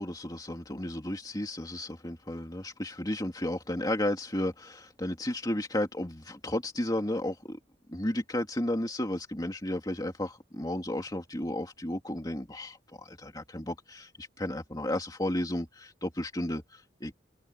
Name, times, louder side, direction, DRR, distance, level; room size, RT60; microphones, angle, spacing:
voice 1, 0.0-7.6 7.9-17.1, left 1 dB, 20° left, 2.6 m, -33 dB
head